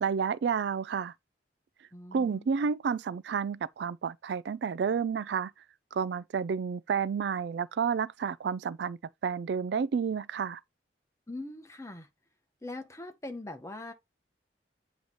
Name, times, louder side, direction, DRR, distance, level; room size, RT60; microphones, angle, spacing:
voice 1, 0.0-1.1 2.1-5.5 5.9-9.0 9.2-10.6, right 6 dB, 65° right, 0.3 m, -30 dB
voice 2, 1.9-2.5 11.3-12.1 12.6-13.9, left 2 dB, 15° left, 0.9 m, -41 dB
7.9 x 3.0 x 4.0 m
head